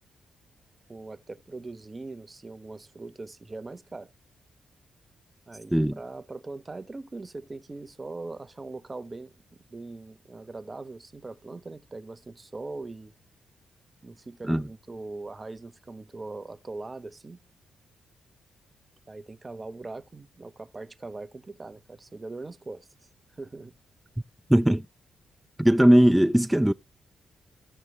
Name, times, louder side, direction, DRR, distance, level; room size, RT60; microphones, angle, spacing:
voice 1, 0.9-4.1 5.5-9.3 9.7-13.1 14.0-17.4 19.1-22.9 23.3-23.7, right 3 dB, 30° right, 0.9 m, -41 dB
voice 2, 24.5-24.9 25.6-26.7, right 1 dB, 5° right, 0.5 m, -19 dB
15.0 x 5.4 x 3.2 m
hypercardioid pair, 45°, 0 cm